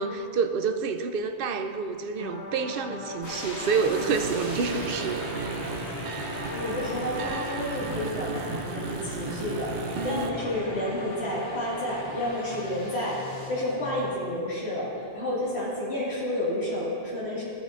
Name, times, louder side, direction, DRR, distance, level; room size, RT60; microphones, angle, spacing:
voice 1, 0.0-5.5, right 5 dB, 65° right, 8 dB, 0.7 m, -28 dB
sound 1, 2.2-14.1, left 2 dB, 35° left, 0.8 m, -40 dB
sound 2, 3.2-13.5, equal, 15° left, 2.5 m, -41 dB
sound 3, 3.9-10.3, right 4 dB, 90° right, 0.9 m, -34 dB
voice 2, 6.5-13.2 13.5-17.4, left 1 dB, 75° left, -8 dB, 2.4 m, -30 dB
14.5 x 9.1 x 2.5 m, 2.6 s
omnidirectional pair, 1.1 m